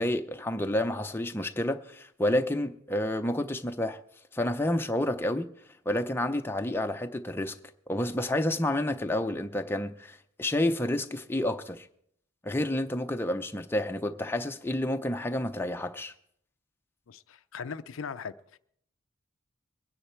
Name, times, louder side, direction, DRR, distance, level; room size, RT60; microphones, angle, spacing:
voice 1, 0.0-4.0 4.3-5.5 5.9-7.6 7.9-11.9 12.4-16.1, left 1 dB, 10° left, 0.6 m, -29 dB
voice 2, 17.1-18.6, left 6 dB, 70° left, 0.5 m, -39 dB
22.5 x 9.9 x 4.5 m
head